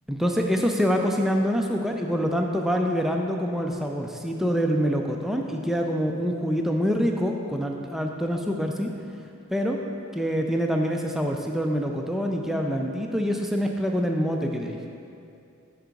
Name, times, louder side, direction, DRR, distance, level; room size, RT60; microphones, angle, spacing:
voice 1, 0.1-8.9 9.5-9.8 10.1-14.8, equal, ahead, 1 dB, 0.3 m, -25 dB
6.9 x 4.6 x 5.1 m, 2.6 s
head